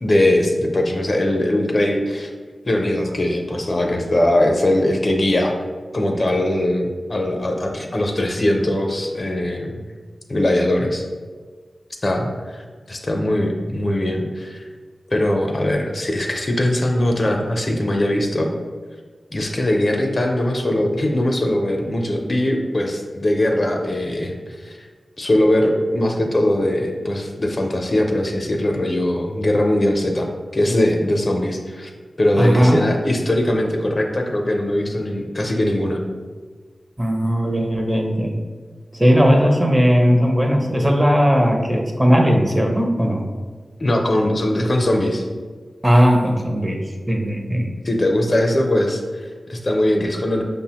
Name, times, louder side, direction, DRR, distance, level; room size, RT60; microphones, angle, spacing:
voice 1, 0.0-2.3 2.6-5.5 5.9-9.8 10.3-11.0 12.0-14.6 15.1-18.5 19.3-24.8 25.2-31.9 32.2-36.0 43.8-45.2 47.8-50.4, left 1 dB, 45° left, 2 dB, 0.4 m, -20 dB
voice 2, 32.3-32.8 37.0-38.4 39.0-43.2 45.8-46.8 47.1-47.7, equal, 15° right, 2 dB, 0.5 m, -17 dB
5.2 x 2.0 x 2.8 m, 1.5 s
cardioid pair, 55°, 0 cm